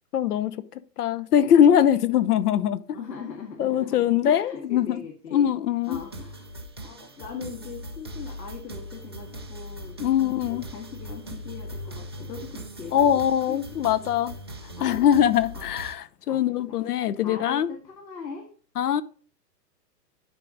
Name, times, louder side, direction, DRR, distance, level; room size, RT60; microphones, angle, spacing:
voice 1, 0.1-3.0 3.6-5.0 5.3-6.0 10.0-10.6 12.9-14.4 14.8-17.7 18.8-19.0, left 9 dB, 65° left, 0.9 m, -22 dB
voice 2, 2.9-5.5 5.9-6.5 6.8-13.1 13.5-13.6 14.8-15.2 15.5-16.0 16.3-16.9 17.2-18.5, left 5 dB, 85° left, 2.0 m, -40 dB
sound 1, 5.8-15.9, equal, 20° right, 0.3 m, -40 dB
11.5 x 4.9 x 3.9 m
hypercardioid pair, 145°, 49 cm